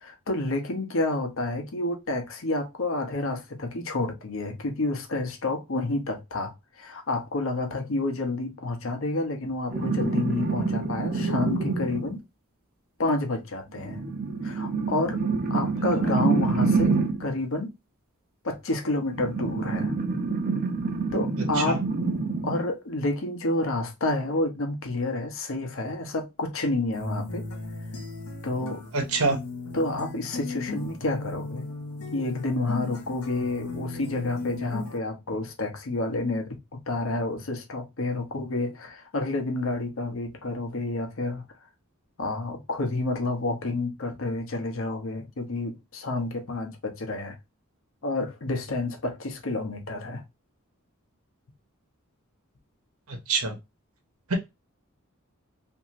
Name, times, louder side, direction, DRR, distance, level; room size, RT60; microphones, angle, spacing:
voice 1, 0.0-12.2 13.0-14.0 14.4-15.2 15.5-17.7 18.4-19.9 21.1-21.8 22.4-27.5 28.4-28.8 29.7-31.7 32.1-41.5 42.2-47.4 48.0-50.2, left 2 dB, 65° left, 0.7 m, -29 dB
sound 1, 9.7-12.2 13.8-17.3 19.1-22.7 24.3-24.4, right 4 dB, 45° right, 0.7 m, -27 dB
sound 2, 26.9-35.0, left 3 dB, 90° left, 1.0 m, -36 dB
voice 2, 28.9-29.4 53.1-53.5 54.3-54.4, right 3 dB, 90° right, 1.0 m, -26 dB
2.9 x 2.7 x 2.5 m
head